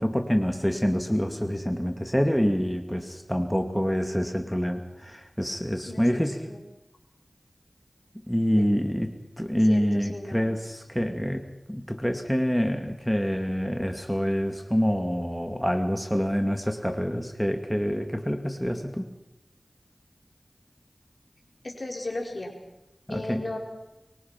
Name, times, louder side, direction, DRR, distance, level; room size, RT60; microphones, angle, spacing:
voice 1, 0.0-6.4 8.3-11.4 11.7-19.1 23.1-23.4, equal, 5° left, 5 dB, 2.3 m, -26 dB
voice 2, 5.9-6.2 6.5-6.6 8.6-8.7 9.5-10.4 21.6-22.5 23.1-23.6, left 2 dB, 65° left, 1 dB, 5.2 m, -35 dB
24.0 x 23.0 x 6.1 m, 0.90 s
wide cardioid pair, 45°, 0 cm